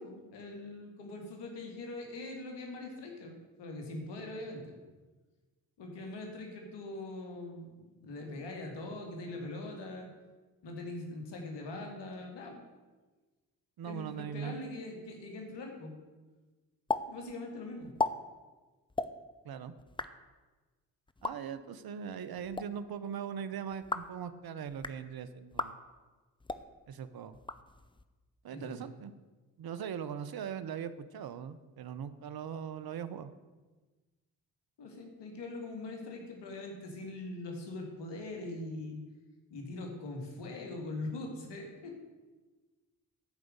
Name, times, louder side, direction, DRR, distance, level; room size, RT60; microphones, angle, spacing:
voice 1, 0.0-4.8 5.8-10.1 10.6-12.6 13.8-15.9 17.1-17.9 28.5-28.9 34.8-39.0 39.5-42.0, left 2 dB, 75° left, 2 dB, 2.5 m, -42 dB
voice 2, 13.8-14.6 19.4-19.7 21.2-25.8 26.9-27.4 28.4-29.1 29.6-33.3, right 8 dB, 55° right, 13 dB, 0.9 m, -40 dB
sound 1, 16.9-17.0 17.3-17.4 17.8-18.1 18.9-19.1 19.8-20.1 21.1-21.3 22.3-22.7 23.7-24.1 24.7-25.0 25.5-25.7 26.4-26.6 27.3-28.0, left 3 dB, 10° left, 0.7 m, -35 dB
12.0 x 5.1 x 7.9 m, 1.3 s
hypercardioid pair, 45°, 42 cm